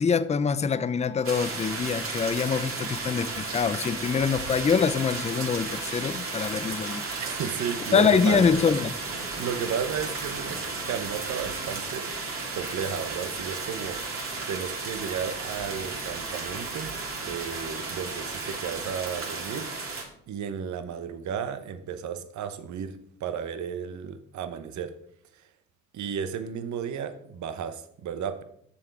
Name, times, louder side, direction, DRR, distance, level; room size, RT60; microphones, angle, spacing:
voice 1, 0.0-7.0 7.9-9.0, left 6 dB, 20° left, 0.5 m, -24 dB
sound 1, 1.2-20.0, right 3 dB, 45° right, 2.3 m, -34 dB
voice 2, 7.2-8.4 9.3-12.1 12.5-16.9 17.2-19.7 20.3-24.9 25.3-25.5 25.9-28.4, right 7 dB, 70° right, 0.9 m, -33 dB
7.2 x 6.9 x 4.8 m
cardioid pair, 90°, 30 cm